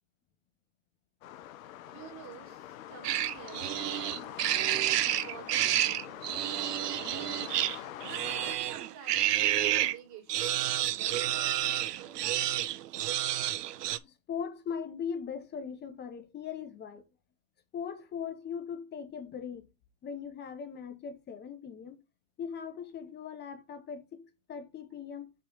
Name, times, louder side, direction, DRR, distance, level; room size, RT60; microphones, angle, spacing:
sound 1, 1.2-8.6, left 12 dB, 60° left, 0.9 m, -44 dB
voice 1, 1.9-3.9 5.0-7.6 8.3-10.5 10.9-12.5, right 8 dB, 35° right, 3.1 m, -50 dB
sound 2, 3.0-10.0 10.3-14.0, right 12 dB, 85° right, 0.7 m, -30 dB
voice 2, 13.8-17.0 17.7-19.7 20.0-22.0 22.4-25.3, left 7 dB, 20° left, 1.1 m, -40 dB
5.0 x 4.3 x 5.1 m
hypercardioid pair, 120°, 46 cm